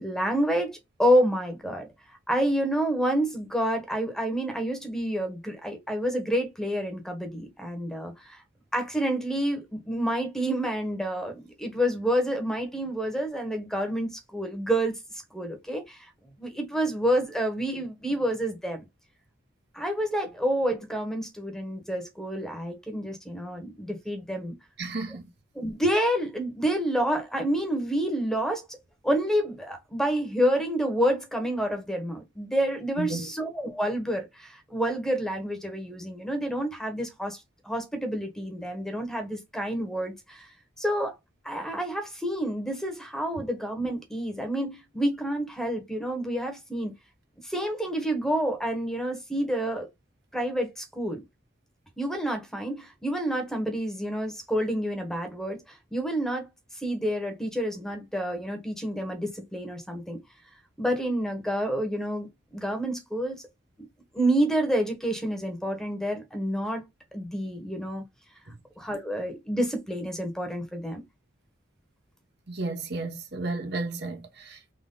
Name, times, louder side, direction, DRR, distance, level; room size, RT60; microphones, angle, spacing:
voice 1, 0.0-8.4 8.7-16.1 16.4-18.8 19.7-24.5 25.5-28.7 29.0-40.5 40.8-41.1 41.4-46.9 47.4-49.9 50.3-51.2 52.0-56.5 56.7-60.2 60.8-63.4 64.1-66.8 67.1-68.0 68.8-71.0, equal, 5° left, 1.1 m, -28 dB
voice 2, 24.8-25.3 33.0-33.3 68.5-68.6 72.5-74.7, right 2 dB, 55° right, 1.1 m, -33 dB
3.9 x 3.1 x 3.8 m
head